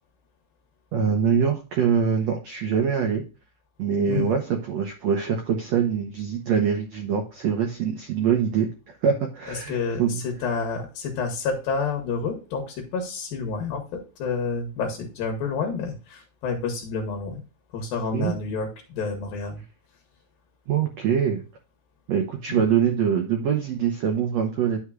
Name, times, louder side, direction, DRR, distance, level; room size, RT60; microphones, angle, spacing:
voice 1, 0.9-3.2 3.8-10.2 18.1-18.4 20.7-21.4 22.1-24.8, right 7 dB, 85° right, 4 dB, 1.5 m, -24 dB
voice 2, 9.5-17.4 17.7-19.6 22.5-22.6, left 4 dB, 70° left, 4 dB, 3.1 m, -29 dB
11.0 x 6.4 x 2.4 m, 0.33 s
omnidirectional pair, 4.5 m